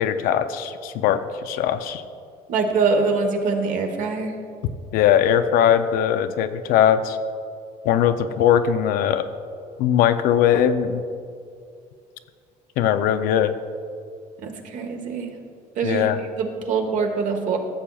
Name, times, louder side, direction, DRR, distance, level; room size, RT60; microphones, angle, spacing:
voice 1, 0.0-2.0 4.9-7.2 7.8-9.3 9.8-11.1 12.8-13.5 15.8-16.2, left 9 dB, 85° left, 11 dB, 0.5 m, -20 dB
voice 2, 2.5-4.3 14.4-15.3 15.8-16.1 16.4-17.6, right 4 dB, 60° right, 4 dB, 1.1 m, -23 dB
14.5 x 7.1 x 2.3 m, 2.3 s
cardioid pair, 125°, 15 cm